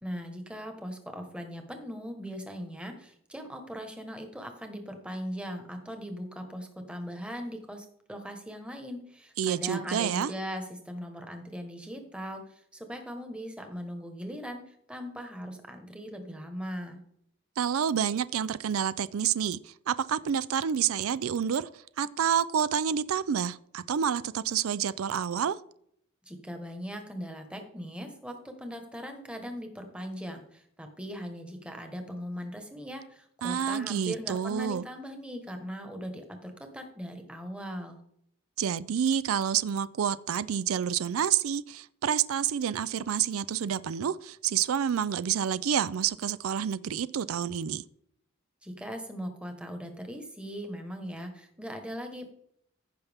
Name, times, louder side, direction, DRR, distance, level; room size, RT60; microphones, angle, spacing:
voice 1, 0.0-17.0 26.3-38.0 48.6-52.3, equal, 5° right, 1.2 m, -39 dB
voice 2, 9.4-10.3 17.6-25.6 33.4-34.9 38.6-47.8, right 8 dB, 90° right, 0.4 m, -28 dB
15.0 x 5.8 x 3.5 m
head